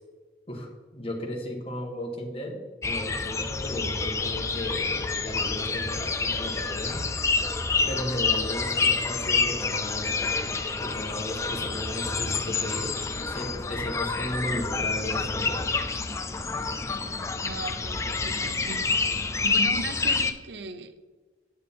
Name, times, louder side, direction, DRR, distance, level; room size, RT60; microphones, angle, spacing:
voice 1, 0.5-7.1 7.9-15.6, equal, 30° left, 0 dB, 1.5 m, -35 dB
sound 1, 2.8-20.3, left 4 dB, 15° left, 0.4 m, -28 dB
voice 2, 17.4-18.9 19.4-21.0, right 3 dB, 75° right, 9 dB, 0.7 m, -37 dB
9.0 x 6.7 x 3.6 m, 1.4 s
head